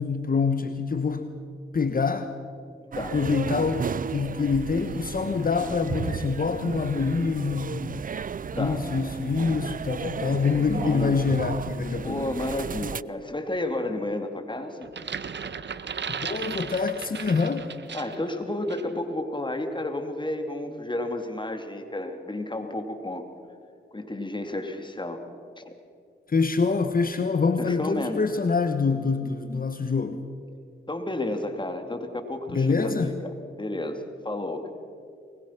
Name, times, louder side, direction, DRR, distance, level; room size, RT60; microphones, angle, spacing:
voice 1, 0.0-1.3 1.7-2.3 3.1-8.0 8.5-12.2 16.2-17.7 26.3-30.2 32.5-33.1, left 4 dB, 45° left, 9 dB, 1.2 m, -25 dB
sound 1, 2.9-13.0, right 6 dB, 40° right, 0.5 m, -34 dB
voice 2, 10.7-11.2 12.0-14.9 17.9-23.3 23.9-25.2 25.6-25.7 27.6-28.2 30.9-34.7, left 1 dB, 25° left, 6 dB, 3.0 m, -31 dB
sound 2, 14.8-18.3 18.7-18.9, right 6 dB, 60° right, 1.2 m, -35 dB
23.5 x 21.5 x 6.0 m, 2.4 s
cardioid pair, 50°, 21 cm